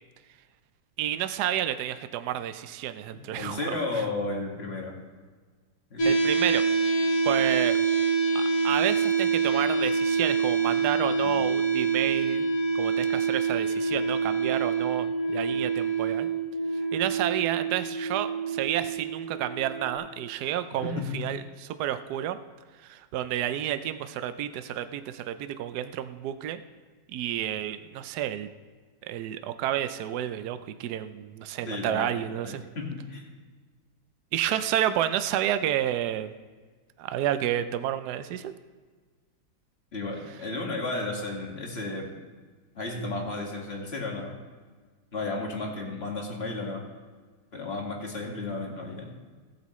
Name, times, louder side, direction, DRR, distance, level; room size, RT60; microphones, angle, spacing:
voice 1, 1.0-3.8 6.0-7.8 8.3-12.5 12.7-16.3 16.9-22.4 22.8-26.6 27.1-28.5 29.0-32.6 34.3-36.3 37.0-38.5, right 11 dB, 70° right, 11 dB, 1.1 m, -30 dB
voice 2, 3.1-5.0 5.9-6.1 11.2-11.4 20.8-21.2 31.7-33.2 39.9-42.1 42.8-44.4 45.1-46.9 47.5-49.1, left 2 dB, 35° left, -1 dB, 2.1 m, -33 dB
sound 1, 6.0-19.9, right 5 dB, 55° left, 1.6 m, -26 dB
18.5 x 8.4 x 3.1 m, 1.5 s
omnidirectional pair, 2.0 m